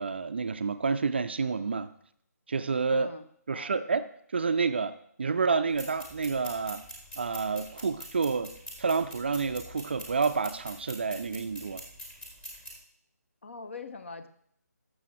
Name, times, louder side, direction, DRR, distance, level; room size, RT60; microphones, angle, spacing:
voice 1, 0.0-1.9 2.5-3.1 3.5-4.1 4.3-6.8 7.2-11.8, right 4 dB, 40° right, 0.4 m, -29 dB
voice 2, 2.9-3.2 3.5-3.8 13.4-14.3, left 4 dB, 45° left, 0.7 m, -43 dB
sound 1, 5.7-12.8, equal, 10° left, 1.1 m, -45 dB
14.0 x 6.2 x 3.1 m
figure-of-eight pair, 150°, 9 cm